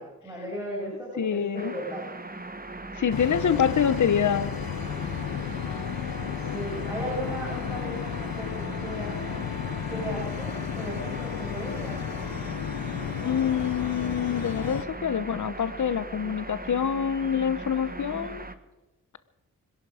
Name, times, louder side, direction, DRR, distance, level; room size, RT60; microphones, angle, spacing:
voice 1, 0.0-2.1 3.4-4.0 6.3-9.4 9.9-12.0, equal, 10° right, 7.1 m, -36 dB
voice 2, 1.2-1.7 2.9-4.5 13.2-18.4, left 8 dB, 55° left, 0.9 m, -26 dB
sound 1, 1.6-18.6, right 2 dB, 25° right, 1.5 m, -39 dB
sound 2, 3.1-14.8, left 9 dB, 90° left, 0.9 m, -33 dB
25.5 x 11.0 x 5.0 m
cardioid pair, 40°, 35 cm